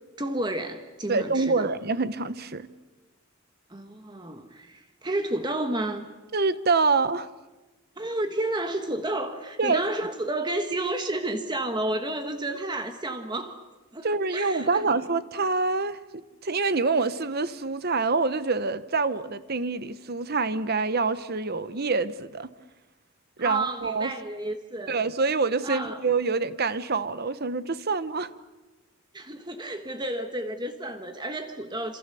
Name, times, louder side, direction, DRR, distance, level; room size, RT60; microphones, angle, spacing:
voice 1, 0.2-1.7 3.7-6.1 8.0-13.6 13.9-14.8 23.4-25.0 25.6-26.0 29.1-32.0, right 1 dB, 20° right, 7 dB, 1.4 m, -31 dB
voice 2, 1.1-2.7 6.3-7.3 9.6-9.8 14.0-22.5 23.4-24.1 24.9-28.3, right 4 dB, 45° right, 14 dB, 1.0 m, -26 dB
28.0 x 27.0 x 7.0 m, 1.2 s
head